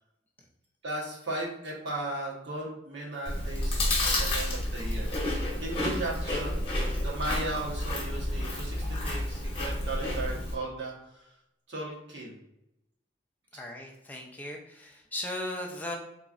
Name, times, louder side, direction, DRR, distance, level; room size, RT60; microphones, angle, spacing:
voice 1, 0.8-5.1 5.6-6.6 7.0-11.3 11.7-12.4, right 2 dB, 85° right, -4 dB, 1.1 m, -36 dB
Chewing mastication, 3.2-10.5, left 1 dB, 30° left, 0.9 m, -30 dB
voice 2, 13.5-16.0, left 1 dB, 10° left, 0 dB, 0.4 m, -37 dB
3.8 x 3.0 x 2.4 m, 0.84 s
head